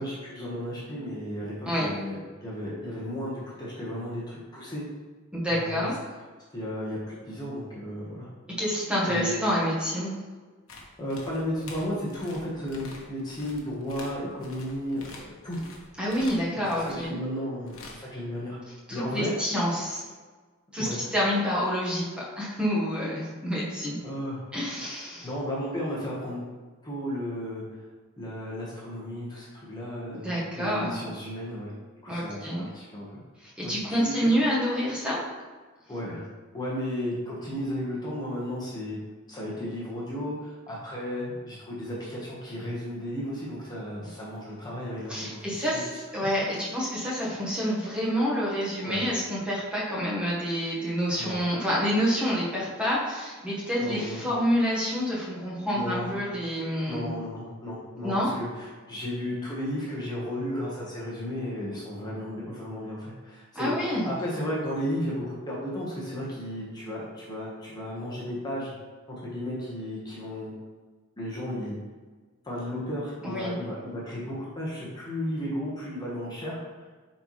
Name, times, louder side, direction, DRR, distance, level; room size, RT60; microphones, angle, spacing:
voice 1, 0.0-4.8 5.5-5.9 6.5-8.3 9.0-9.4 11.0-15.6 16.6-18.6 18.9-19.3 20.8-21.1 24.0-24.4 24.9-26.4 26.8-27.6 28.2-31.7 32.0-33.1 33.6-34.4 35.9-36.2 36.5-39.0 39.3-45.8 48.8-49.0 51.2-51.3 53.8-54.2 55.7-56.2 56.9-68.7 69.1-70.5 71.2-71.8 72.4-76.9, equal, 20° left, -6 dB, 1.3 m, -34 dB
voice 2, 5.3-5.9 8.6-10.1 16.0-17.1 18.9-20.0 20.7-24.0 24.5-25.3 30.1-31.0 32.1-32.6 33.4-35.2 45.1-57.1 58.0-58.3 63.5-64.1 73.2-73.5, equal, 5° right, -7 dB, 1.3 m, -28 dB
sound 1, 10.7-17.1 17.7-18.1 19.2-19.3, left 3 dB, 75° left, 1.1 m, -47 dB
7.7 x 4.2 x 3.2 m, 1.4 s
head